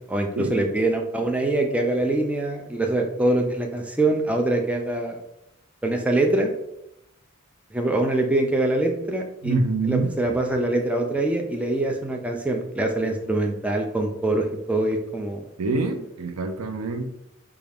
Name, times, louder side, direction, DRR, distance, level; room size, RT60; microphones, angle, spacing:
voice 1, 0.0-5.2 5.8-6.5 7.7-9.5 9.8-15.4, right 2 dB, 5° right, 2 dB, 0.3 m, -24 dB
voice 2, 9.4-10.1 15.6-17.0, right 3 dB, 85° right, 7 dB, 0.5 m, -25 dB
3.9 x 2.3 x 3.4 m, 0.83 s
head